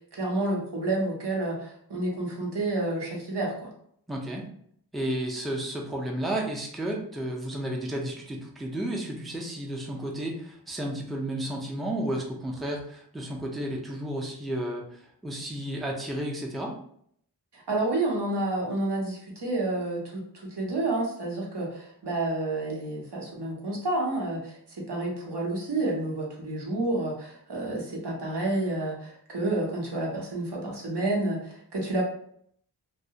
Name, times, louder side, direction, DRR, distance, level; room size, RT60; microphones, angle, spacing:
voice 1, 0.1-3.7 17.5-24.6 24.9-32.0, right 2 dB, 80° right, -2 dB, 0.8 m, -29 dB
voice 2, 4.1-4.4 4.9-16.8, right 1 dB, ahead, -1 dB, 0.4 m, -32 dB
2.2 x 2.1 x 2.7 m, 0.65 s
wide cardioid pair, 45°, 40 cm